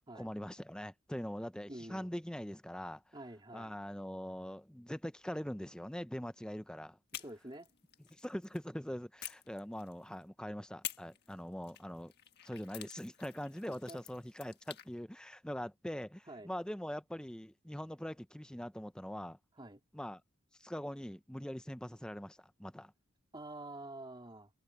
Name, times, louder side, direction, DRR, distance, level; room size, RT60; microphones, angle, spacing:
voice 1, 0.1-3.1 3.5-7.0 8.1-12.1 12.4-19.4 19.9-20.2 20.6-22.9, equal, 5° left, 0.5 m, -42 dB
voice 2, 1.7-2.1 3.1-3.8 7.2-7.7 13.7-14.0 16.3-16.5 19.6-19.8 23.3-24.5, right 1 dB, 20° right, 3.1 m, -48 dB
sound 1, 7.1-8.6 9.2-10.2 10.8-14.9, left 12 dB, 45° left, 1.7 m, -49 dB
open air
head